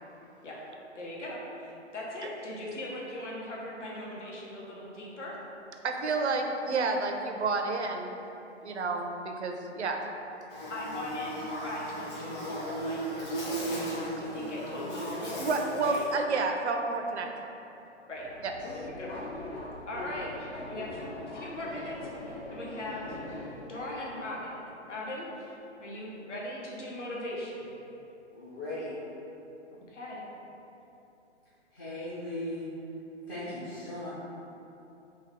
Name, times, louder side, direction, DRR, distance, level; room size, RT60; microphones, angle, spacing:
voice 1, 0.9-5.4 10.7-13.7 14.2-15.4 15.8-16.0 18.1-18.3 18.7-19.4 19.9-23.1 23.7-24.6 24.8-27.7 29.9-30.2, left 1 dB, 75° left, -4 dB, 1.0 m, -39 dB
voice 2, 5.8-8.2 8.6-10.0 15.4-17.3 18.4-18.5, right 3 dB, 70° right, 4 dB, 0.5 m, -30 dB
Buzz, 10.5-16.1, right 1 dB, 35° left, 1.2 m, -36 dB
Subway metro underground, 18.2-23.8, left 2 dB, 60° left, 0.7 m, -42 dB
voice 3, 28.3-28.9 31.7-32.7 33.3-34.1, left 1 dB, 20° left, -12 dB, 0.4 m, -37 dB
3.4 x 3.2 x 3.4 m, 3.0 s
figure-of-eight pair, 130°, 36 cm